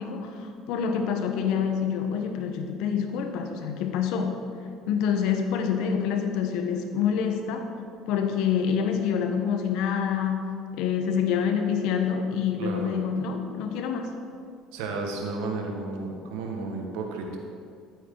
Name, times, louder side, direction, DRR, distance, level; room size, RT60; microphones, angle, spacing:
voice 1, 0.0-4.4 4.9-7.7 8.1-10.5 10.7-14.1, left 7 dB, 75° left, 5 dB, 1.1 m, -27 dB
voice 2, 12.6-12.9 14.7-17.4, right 3 dB, 85° right, 2 dB, 1.7 m, -32 dB
13.0 x 8.4 x 4.0 m, 2.3 s
supercardioid pair, 95°, 0 cm